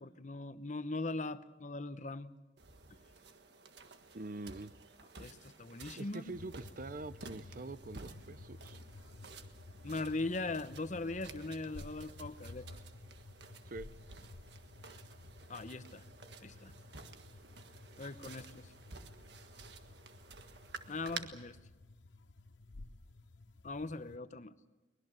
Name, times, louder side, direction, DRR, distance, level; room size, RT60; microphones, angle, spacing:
voice 1, 0.0-2.3 5.2-6.2 9.8-12.7 15.5-16.0 16.4-16.7 18.0-18.7 20.9-21.6 23.6-24.5, left 2 dB, 40° left, 12 dB, 0.9 m, -40 dB
sound 1, 2.6-21.2, right 4 dB, 70° right, 1.6 m, -53 dB
voice 2, 4.1-4.7 6.0-8.8 13.7-13.9, right 2 dB, 50° right, 15 dB, 0.7 m, -45 dB
sound 2, 6.3-24.2, left 2 dB, 85° left, 0.9 m, -54 dB
23.0 x 20.5 x 7.7 m, 1.2 s
head